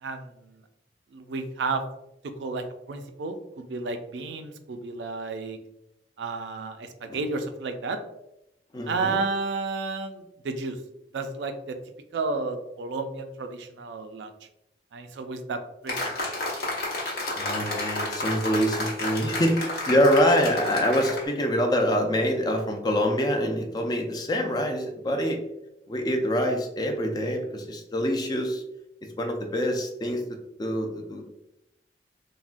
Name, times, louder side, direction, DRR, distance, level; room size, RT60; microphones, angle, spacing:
voice 1, 1.1-1.8 2.2-5.6 6.2-8.0 8.9-10.8 11.1-11.8 12.1-14.3 14.9-16.1, right 3 dB, 85° right, 7 dB, 0.4 m, -32 dB
voice 2, 8.7-9.2 17.4-25.4 25.9-28.6 29.2-31.3, equal, 20° left, 3 dB, 0.3 m, -25 dB
sound 1, 15.9-21.3, left 2 dB, 55° left, 0.8 m, -31 dB
3.4 x 2.1 x 2.4 m, 0.87 s
head